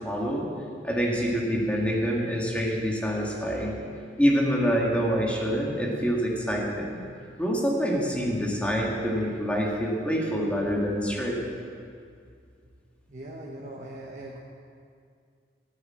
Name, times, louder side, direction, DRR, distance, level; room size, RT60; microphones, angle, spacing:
voice 1, 0.1-0.5 0.8-3.8 4.2-7.0 7.4-11.4, equal, 5° left, -2 dB, 1.9 m, -26 dB
voice 2, 13.1-14.4, right 1 dB, 45° right, -3 dB, 1.1 m, -40 dB
12.5 x 9.3 x 7.5 m, 2.3 s
head